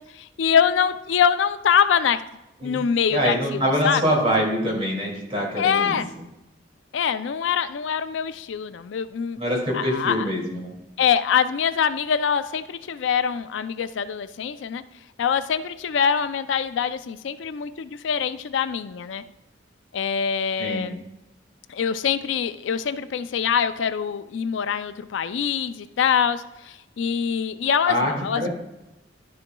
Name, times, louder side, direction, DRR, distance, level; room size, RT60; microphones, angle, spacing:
voice 1, 0.1-2.2 2.6-4.0 5.6-6.1 6.9-9.4 9.7-10.3 11.0-14.8 15.2-19.2 19.9-21.0 21.7-28.5, left 7 dB, 75° left, 12 dB, 0.4 m, -24 dB
voice 2, 3.1-6.0 9.4-10.7 20.6-20.9 27.8-28.5, equal, 30° right, -1 dB, 2.3 m, -24 dB
11.0 x 6.8 x 2.3 m, 0.95 s
head